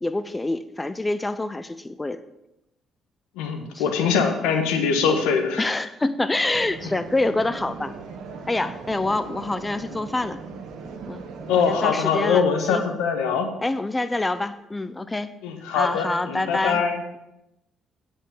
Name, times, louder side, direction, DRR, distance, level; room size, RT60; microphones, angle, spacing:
voice 1, 0.0-2.2 3.7-3.8 5.6-7.9 8.5-10.4 11.1-11.2 11.6-12.8 13.6-15.3 15.7-16.8, left 2 dB, 15° left, 13 dB, 0.5 m, -26 dB
voice 2, 3.4-5.7 11.5-13.5 15.4-17.0, left 6 dB, 90° left, 5 dB, 1.3 m, -23 dB
sound 1, 6.5-11.8, right 5 dB, 75° right, 1.3 m, -38 dB
8.8 x 5.3 x 7.1 m, 0.89 s
supercardioid pair, 70°, 0 cm